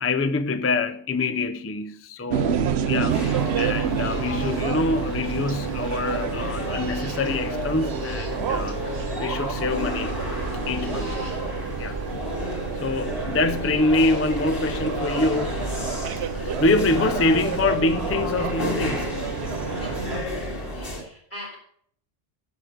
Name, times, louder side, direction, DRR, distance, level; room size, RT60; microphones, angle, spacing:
voice 1, 0.0-8.8 9.2-10.2 10.7-12.0 12.8-15.6 16.3-19.2, left 3 dB, 20° left, 0.4 m, -25 dB
sound 1, 2.3-20.2, right 8 dB, 85° right, 1.0 m, -29 dB
sound 2, 3.1-21.0, left 1 dB, 60° left, 2.5 m, -32 dB
sound 3, 3.4-11.4, right 3 dB, 65° right, 1.4 m, -44 dB
voice 2, 16.8-17.2 19.8-20.5 20.7-21.6, right 1 dB, 75° left, 4.9 m, -41 dB
10.0 x 6.5 x 6.5 m
omnidirectional pair, 1.1 m